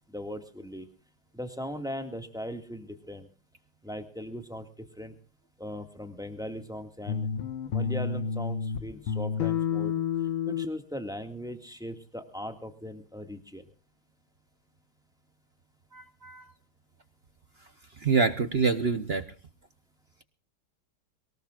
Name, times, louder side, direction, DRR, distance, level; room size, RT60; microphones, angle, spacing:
voice 1, 0.1-0.9 1.3-3.3 3.8-4.7 5.0-5.1 5.6-7.3 7.7-9.9 10.5-13.7, equal, ahead, 6 dB, 1.7 m, -39 dB
sound 1, 7.1-8.8 9.1-10.7, left 7 dB, 70° left, 1.8 m, -29 dB
voice 2, 15.9-16.4 18.0-19.2, right 4 dB, 50° right, 10 dB, 0.7 m, -26 dB
23.0 x 19.5 x 2.5 m, 0.37 s
omnidirectional pair, 2.3 m